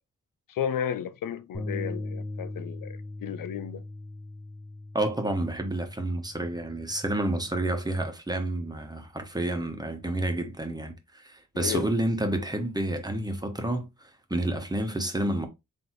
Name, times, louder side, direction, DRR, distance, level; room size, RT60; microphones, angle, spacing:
voice 1, 0.5-3.8 11.6-11.8, left 9 dB, 80° left, 0.5 m, -33 dB
Bass guitar, 1.5-7.8, left 2 dB, 10° left, 1.0 m, -40 dB
voice 2, 4.9-15.5, right 1 dB, 10° right, 1.2 m, -29 dB
4.0 x 3.5 x 2.9 m
cardioid pair, 55°, 32 cm